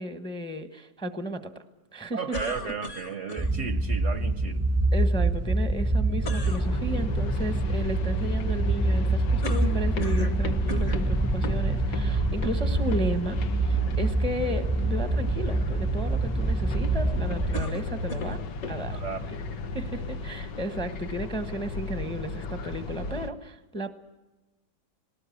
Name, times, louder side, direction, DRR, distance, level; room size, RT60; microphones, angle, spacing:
voice 1, 0.0-1.5 1.9-2.4 4.9-18.4 18.7-19.0 19.7-23.9, right 1 dB, 5° left, 9 dB, 0.9 m, -34 dB
voice 2, 2.1-4.6 18.9-19.3, right 6 dB, 55° right, 10 dB, 1.0 m, -34 dB
sound 1, 2.3-3.5 6.2-6.7 9.4-10.4 10.7-11.1 11.9-12.0 17.5-18.4, equal, 45° left, 1.9 m, -36 dB
sound 2, 3.4-17.6, right 2 dB, 20° right, 0.4 m, -26 dB
sound 3, 6.4-23.3, left 3 dB, 90° left, 1.8 m, -35 dB
19.5 x 19.0 x 8.6 m, 1.1 s
omnidirectional pair, 1.8 m